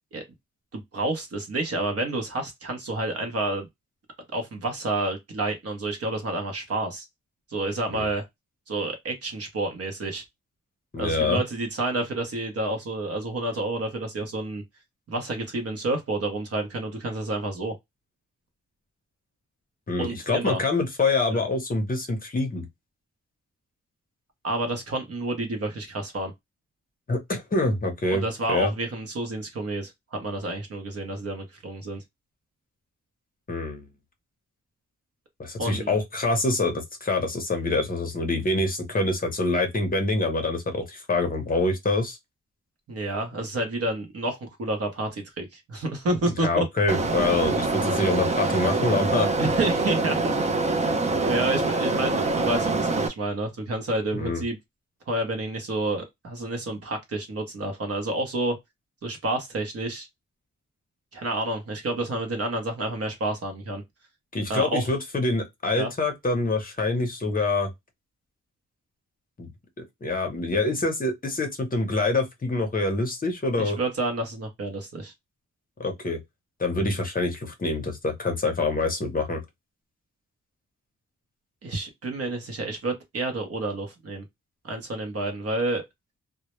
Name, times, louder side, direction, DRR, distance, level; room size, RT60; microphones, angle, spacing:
voice 1, 0.7-3.7 4.3-7.0 7.5-8.2 8.7-10.2 11.0-14.6 15.1-17.7 20.0-20.6 21.3-21.4 24.4-26.3 28.1-32.0 35.6-36.0 42.9-46.7 49.4-50.4 51.2-54.6 55.1-58.6 59.0-60.1 61.1-63.8 64.5-64.9 65.7-65.9 73.6-75.1 81.6-84.2 84.6-85.8, right 2 dB, 55° right, 0.7 m, -29 dB
voice 2, 10.9-11.4 19.9-22.7 27.1-28.2 28.5-28.7 33.5-33.9 35.4-42.2 46.4-49.3 54.1-54.4 64.3-67.7 69.4-69.5 69.8-73.8 75.8-76.2 76.6-79.4, left 2 dB, 30° left, 0.6 m, -25 dB
sound 1, 46.9-53.1, right 2 dB, 25° right, 0.4 m, -25 dB
2.1 x 2.0 x 2.9 m
wide cardioid pair, 155°, 29 cm